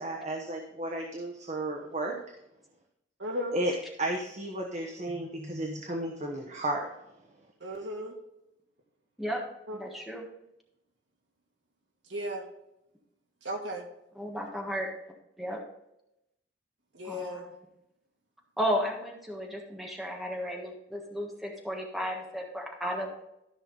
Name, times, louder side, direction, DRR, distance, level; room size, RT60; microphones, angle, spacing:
voice 1, 0.0-2.2 3.5-3.7 4.0-6.9, right 1 dB, 40° right, 0 dB, 1.1 m, -33 dB
voice 2, 3.2-3.6 7.6-8.1 9.7-9.8 12.1-12.4 13.4-13.8 16.9-17.5, equal, 65° right, 1 dB, 2.0 m, -35 dB
voice 3, 9.7-10.2 14.1-14.9 15.4-15.6 17.0-17.5 18.6-23.1, equal, ahead, -1 dB, 1.5 m, -34 dB
13.5 x 5.9 x 4.0 m, 0.84 s
head